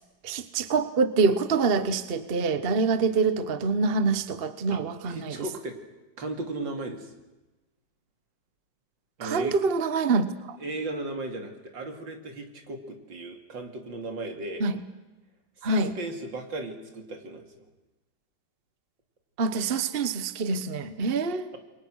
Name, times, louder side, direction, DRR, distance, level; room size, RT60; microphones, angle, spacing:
voice 1, 0.2-5.4 9.2-10.6 14.6-14.8 15.6-15.9 19.4-21.5, right 4 dB, 35° right, 11 dB, 1.2 m, -25 dB
voice 2, 4.7-5.8 6.2-7.1 9.2-9.5 10.6-14.6 15.6-17.6, right 2 dB, 80° right, 4 dB, 3.4 m, -36 dB
28.5 x 23.0 x 6.4 m, 1.1 s
omnidirectional pair, 2.0 m